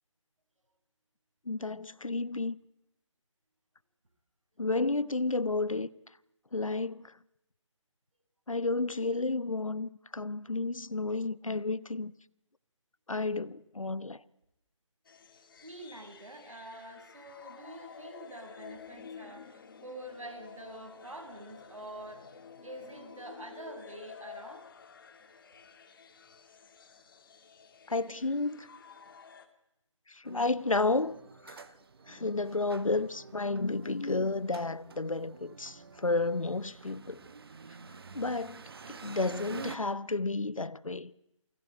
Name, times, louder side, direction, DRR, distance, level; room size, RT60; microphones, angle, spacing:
voice 1, 1.5-2.6 4.6-5.9 6.5-7.2 8.5-12.1 13.1-14.2 27.9-28.7 30.1-31.7 32.1-37.3 38.1-41.1, left 3 dB, 90° left, 1.0 m, -32 dB
sound 1, 15.0-29.5, left 6 dB, 40° left, 2.3 m, -51 dB
voice 2, 15.6-22.3 22.6-24.7, right 1 dB, 80° right, 6.6 m, -46 dB
sound 2, 30.2-39.8, right 5 dB, 50° right, 1.5 m, -49 dB
28.0 x 20.0 x 9.0 m
figure-of-eight pair, 155°, 17 cm